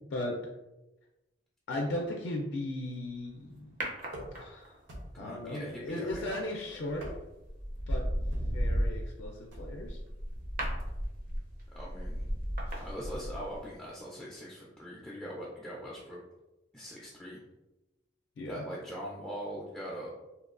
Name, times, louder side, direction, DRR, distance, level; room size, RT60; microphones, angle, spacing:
voice 1, 1.7-3.8 4.3-4.7 5.2-7.1 7.9-10.0 12.7-12.8 18.4-18.6, left 1 dB, 85° left, 0 dB, 0.4 m, -37 dB
sound 1, 3.8-4.8 6.7-7.0 7.5-13.7 13.9-14.0, equal, 50° right, 0.5 m, -34 dB
sound 2, 4.1-4.5 4.9-5.4 6.1-6.5 6.9-7.5 8.3-8.6 9.5-9.8 10.6-10.9, equal, 85° right, 0.7 m, -45 dB
voice 2, 5.1-6.8 11.7-12.2 12.8-16.2 16.7-17.4 18.5-20.1, equal, 5° left, -6 dB, 0.3 m, -42 dB
2.9 x 2.2 x 2.4 m, 1.0 s
head